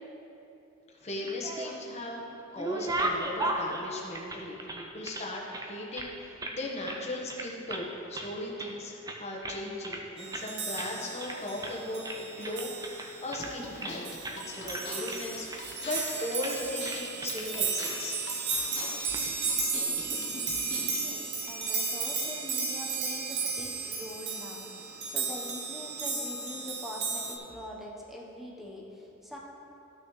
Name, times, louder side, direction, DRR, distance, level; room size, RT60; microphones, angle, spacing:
voice 1, 1.0-2.2 2.5-14.0 14.3-15.5 15.8-18.3, left 1 dB, 30° left, -2 dB, 1.2 m, -37 dB
sound 1, 1.1-2.0 2.3-5.3 5.5-6.6 6.9-7.0 7.3-7.9 8.1-8.8 9.1-10.0 10.3-10.5 10.8-10.9 11.2-11.8 12.0-14.0 14.2-14.4 14.7-15.6 15.9-16.1 16.4-16.6 16.8-17.5 17.8-17.9 18.9-19.2, right 2 dB, 15° right, 0.5 m, -36 dB
sound 2, 10.2-27.4, right 4 dB, 50° right, 0.9 m, -34 dB
sound 3, 13.4-21.2, left 2 dB, 55° left, 1.0 m, -44 dB
voice 2, 21.0-29.4, equal, ahead, -3 dB, 1.0 m, -43 dB
13.0 x 6.1 x 3.2 m, 2.9 s
head